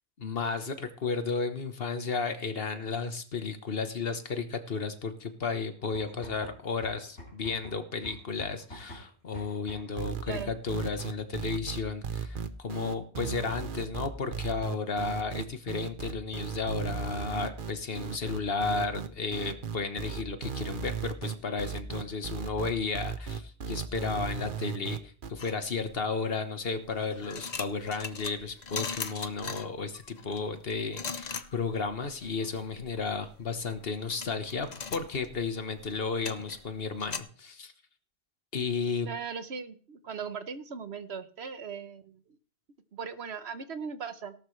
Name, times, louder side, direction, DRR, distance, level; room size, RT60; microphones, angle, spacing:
voice 1, 0.2-37.7 38.5-39.1, left 4 dB, 60° left, 9 dB, 1.4 m, -33 dB
sound 1, 5.8-10.0, left 1 dB, 85° left, 3.2 m, -47 dB
sound 2, 10.0-25.3, right 7 dB, 50° right, 1.0 m, -36 dB
sound 3, 25.4-26.2 26.8-37.2, left 5 dB, 40° left, 0.9 m, -40 dB
voice 2, 39.0-42.4 42.9-44.3, right 6 dB, 70° right, 11 dB, 1.3 m, -39 dB
17.5 x 12.0 x 3.3 m, 0.41 s
omnidirectional pair, 1.1 m